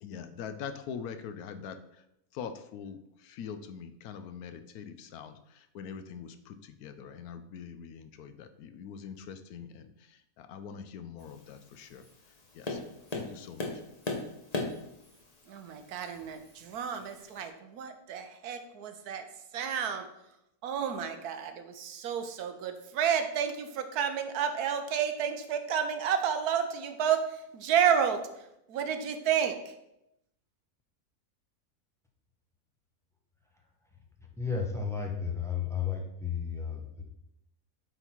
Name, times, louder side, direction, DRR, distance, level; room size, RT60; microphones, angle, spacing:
voice 1, 0.0-1.8 2.3-3.0 3.2-5.4 5.7-9.9 10.4-12.0 12.5-12.8 13.1-13.7, left 7 dB, 80° left, 10 dB, 1.1 m, -43 dB
Tap, 11.2-17.4, left 2 dB, 30° left, 0.9 m, -40 dB
voice 2, 15.5-19.2 19.5-20.1 20.6-29.7, right 8 dB, 80° right, 7 dB, 1.3 m, -31 dB
voice 3, 34.4-37.0, left 6 dB, ahead, 0 dB, 0.8 m, -33 dB
7.9 x 4.0 x 4.5 m, 0.83 s
omnidirectional pair, 1.6 m